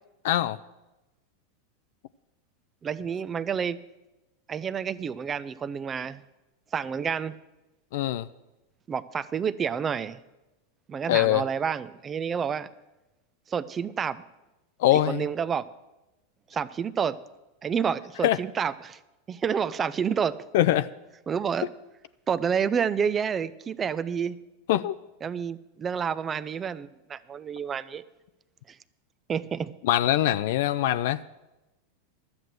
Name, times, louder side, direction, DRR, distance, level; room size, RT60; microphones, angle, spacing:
voice 1, 0.2-0.6 7.9-8.3 11.1-11.4 14.8-15.3 18.2-18.4 20.5-20.9 24.7-25.0 29.8-31.2, left 13 dB, 65° left, 13 dB, 0.4 m, -23 dB
voice 2, 2.8-3.8 4.5-6.2 6.7-7.4 8.9-10.2 10.9-12.7 13.5-14.2 15.1-15.7 16.5-17.2 17.6-19.0 19.3-20.4 21.3-21.7 22.3-24.4 25.2-28.0 28.7-28.8 29.3-29.7, right 7 dB, 25° right, 17 dB, 0.5 m, -29 dB
12.0 x 7.9 x 7.7 m, 1.0 s
hypercardioid pair, 100°, 0 cm